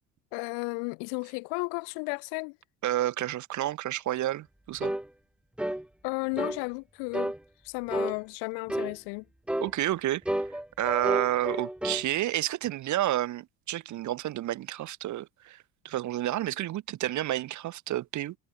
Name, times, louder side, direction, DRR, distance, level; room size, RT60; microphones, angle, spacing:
voice 1, 0.3-2.6 6.0-7.3 7.6-9.2, left 36 dB, 80° left, 2.4 m, -33 dB
voice 2, 2.8-4.9 9.6-10.2 10.8-15.6 15.8-18.4, right 14 dB, 45° right, 0.7 m, -30 dB
sound 1, 4.8-5.1 5.6-5.8 6.4-6.6 7.1-7.4 7.9-8.2 8.7-9.0 9.5-9.7 10.3-12.1, right 1 dB, 5° right, 0.7 m, -30 dB
supercardioid pair, 80°, 41 cm